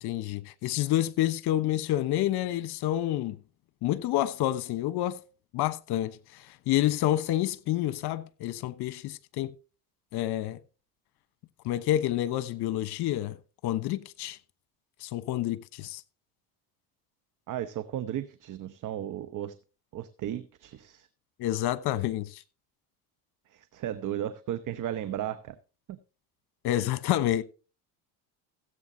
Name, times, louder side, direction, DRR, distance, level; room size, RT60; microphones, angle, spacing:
voice 1, 0.0-3.4 3.8-5.2 5.5-9.5 10.1-10.6 11.6-13.3 13.6-14.4 15.0-16.0 21.4-22.4 26.6-27.4, left 13 dB, 55° left, 1.1 m, -28 dB
voice 2, 17.5-19.6 19.9-21.1 23.5-25.5 25.9-26.0, right 11 dB, 40° right, 0.9 m, -35 dB
16.5 x 8.2 x 2.8 m
supercardioid pair, 80°, 46 cm